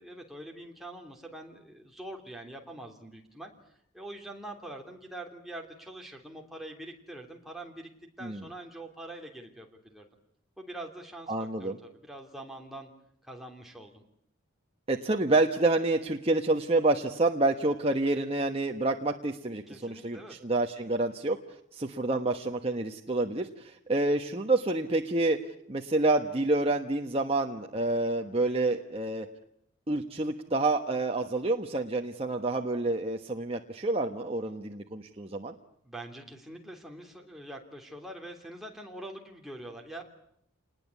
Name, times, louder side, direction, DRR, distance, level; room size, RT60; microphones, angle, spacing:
voice 1, 0.0-3.5 3.9-7.9 8.2-10.1 10.6-11.3 11.6-12.9 13.2-14.0 19.7-20.3 35.8-40.0, right 1 dB, ahead, 1 dB, 3.1 m, -44 dB
voice 2, 11.3-11.8 14.9-21.4 21.7-25.4 25.7-29.3 29.9-35.5, right 2 dB, 30° right, 3 dB, 1.2 m, -28 dB
27.5 x 20.5 x 8.4 m, 0.73 s
head